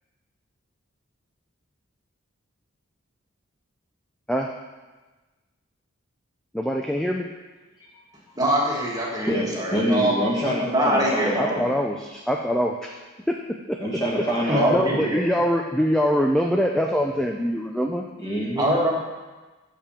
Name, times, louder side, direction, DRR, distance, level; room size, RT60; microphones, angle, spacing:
voice 1, 6.5-7.3 11.2-12.9 13.3-13.8 14.2-18.0, equal, ahead, 1 dB, 0.3 m, -24 dB
voice 2, 8.3-10.2 10.6-11.6 14.5-15.2 18.6-18.9, right 1 dB, 20° right, -3 dB, 1.4 m, -23 dB
voice 3, 9.3-11.7 13.8-15.0 18.2-18.7, equal, 20° left, -4 dB, 1.7 m, -25 dB
6.7 x 5.7 x 7.2 m, 1.2 s
head